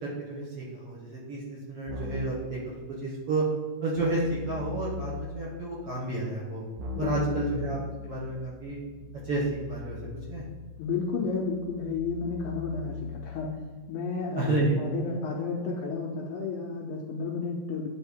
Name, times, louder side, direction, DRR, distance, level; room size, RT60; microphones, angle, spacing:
voice 1, 0.0-3.5 3.8-6.6 7.0-7.8 8.0-8.8 9.2-9.4 9.7-10.0 10.3-10.4 14.4-14.8, right 2 dB, 60° right, -6 dB, 1.7 m, -31 dB
Keyboard (musical), 1.9-2.5 4.0-5.5 6.8-13.8, left 4 dB, 85° right, 2.5 m, -40 dB
voice 2, 7.0-7.4 10.8-13.6 13.9-17.9, left 4 dB, 80° left, 0 dB, 1.9 m, -32 dB
10.0 x 3.4 x 3.5 m, 1.3 s
omnidirectional pair, 4.0 m